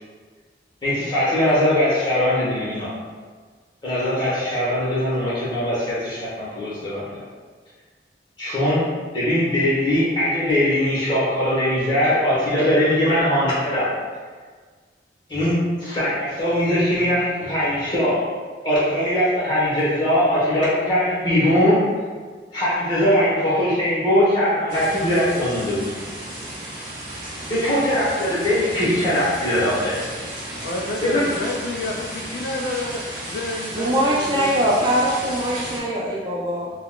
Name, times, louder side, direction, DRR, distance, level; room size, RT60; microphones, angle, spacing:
voice 1, 0.8-2.9 3.8-7.2 8.4-8.8 9.1-13.9 15.3-18.2 18.6-21.8 22.5-25.8 27.5-30.0 31.0-31.2, left 1 dB, 25° left, -9 dB, 1.0 m, -21 dB
sound 1, 24.7-35.8, right 1 dB, 50° right, 0.9 m, -34 dB
voice 2, 30.5-34.8, left 2 dB, 65° left, -1 dB, 0.3 m, -30 dB
voice 3, 33.8-36.7, equal, 25° right, -5 dB, 0.3 m, -22 dB
3.6 x 2.3 x 2.3 m, 1.5 s
head